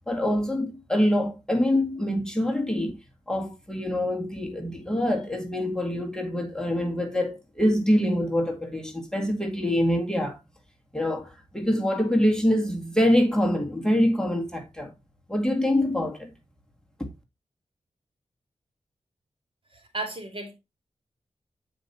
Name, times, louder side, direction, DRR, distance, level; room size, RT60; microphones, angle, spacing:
voice 1, 0.1-3.0 3.3-10.4 10.9-14.9 15.3-16.3, left 1 dB, 5° left, 2.0 m, -25 dB
voice 2, 19.7-20.5, right 2 dB, 45° right, 2.7 m, -34 dB
9.0 x 5.2 x 4.1 m
wide cardioid pair, 80°, 12 cm